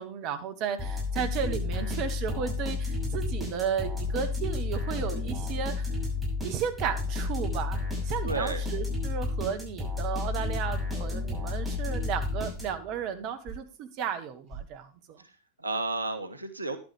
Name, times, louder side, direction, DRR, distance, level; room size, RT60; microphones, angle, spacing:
voice 1, 0.0-5.9 6.4-15.2, right 7 dB, 40° right, 8 dB, 1.1 m, -34 dB
sound 1, 0.8-13.0, left 3 dB, 5° right, 6.3 m, -31 dB
sound 2, 4.0-4.3 5.0-5.2 6.1-6.3 7.2-7.3 8.1-8.3 9.2-9.4 10.2-10.3 11.0-11.2 11.7-11.9 12.5-12.8 13.4-13.7 14.5-14.6, right 3 dB, 20° left, 4.3 m, -42 dB
voice 2, 8.2-8.6 15.2-16.8, right 3 dB, 80° right, 10 dB, 0.9 m, -33 dB
11.0 x 9.4 x 3.2 m, 0.34 s
figure-of-eight pair, 90°, 0 cm